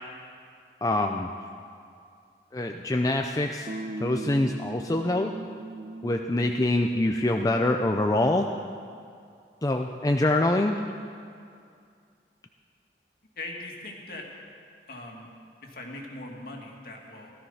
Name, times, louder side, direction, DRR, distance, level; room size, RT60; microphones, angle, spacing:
voice 1, 0.8-1.3 2.5-3.7 4.0-5.3 6.0-8.5 9.6-10.8, left 1 dB, 20° left, 4 dB, 0.5 m, -25 dB
sound 1, 3.7-6.8, right 2 dB, 40° right, 0.5 m, -38 dB
voice 2, 13.4-14.3 14.9-15.3 15.6-17.3, left 2 dB, 55° left, 0 dB, 2.2 m, -40 dB
16.5 x 13.5 x 5.6 m, 2.3 s
head